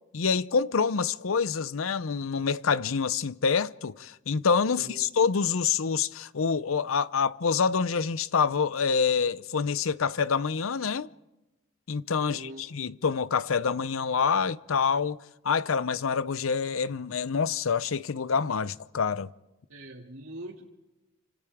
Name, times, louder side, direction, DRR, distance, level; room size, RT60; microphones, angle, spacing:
voice 1, 0.1-11.1 11.9-15.2 15.4-19.3, left 5 dB, 85° left, 0.6 m, -26 dB
voice 2, 4.7-5.1 12.2-12.7 19.7-20.6, right 1 dB, 90° right, 2.5 m, -43 dB
29.5 x 26.0 x 3.6 m
head